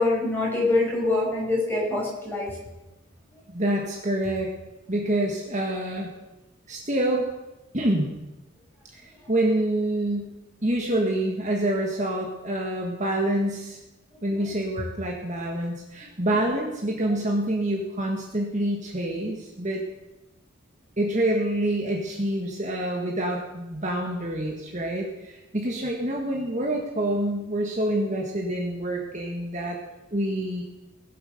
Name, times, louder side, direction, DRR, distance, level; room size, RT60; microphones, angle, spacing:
voice 1, 0.0-2.5, left 2 dB, 10° left, -5 dB, 5.6 m, -24 dB
voice 2, 3.5-4.5 4.9-6.1 6.7-7.3 7.7-8.1 8.9-10.4 10.6-13.8 14.2-19.8 21.0-29.8 30.1-30.6, right 1 dB, 35° right, 0 dB, 1.8 m, -27 dB
19.5 x 7.9 x 6.7 m, 1.0 s
head